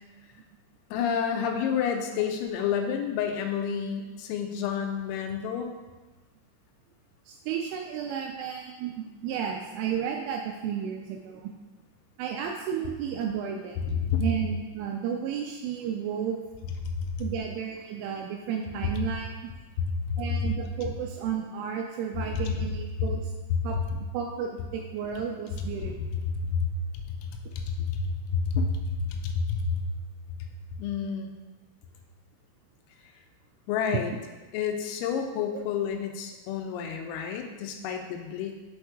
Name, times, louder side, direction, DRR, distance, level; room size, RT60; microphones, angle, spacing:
voice 1, 0.9-5.7 13.8-14.3 16.8-17.3 19.8-20.5 22.3-22.5 23.5-23.6 23.9-24.0 25.5-26.7 27.1-29.9 30.4-30.5 30.8-31.3 33.7-34.1 34.5-38.5, left 6 dB, 85° left, 4 dB, 3.4 m, -29 dB
voice 2, 7.3-11.5 12.2-13.8 14.2-16.4 17.2-19.3 20.2-23.3 23.6-23.8 24.1-25.9 35.5-35.6, right 8 dB, 85° right, 1 dB, 2.8 m, -33 dB
7.3 x 4.4 x 4.7 m, 1.2 s
omnidirectional pair, 6.0 m